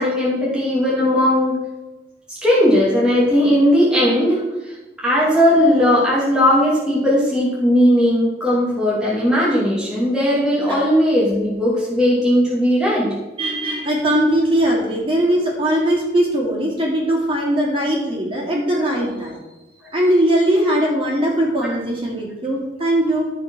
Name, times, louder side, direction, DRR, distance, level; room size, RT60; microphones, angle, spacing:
voice 1, 0.0-1.6 2.3-4.7 5.0-13.2, equal, 5° right, -7 dB, 2.8 m, -17 dB
voice 2, 13.4-19.4 19.9-23.2, right 1 dB, 30° right, -3 dB, 3.5 m, -20 dB
13.5 x 5.8 x 6.4 m, 1.1 s
head